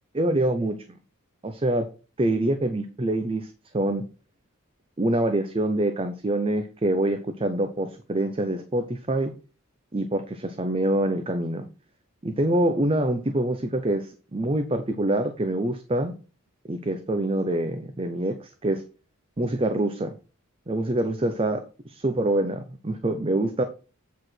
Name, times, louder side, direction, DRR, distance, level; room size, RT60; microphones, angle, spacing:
voice 1, 0.1-0.8 1.4-1.9 2.2-4.0 5.0-9.3 9.9-11.7 12.2-16.1 16.7-18.8 19.4-20.1 20.7-23.6, right 1 dB, 25° right, 8 dB, 0.6 m, -25 dB
8.1 x 4.9 x 4.4 m, 0.34 s
head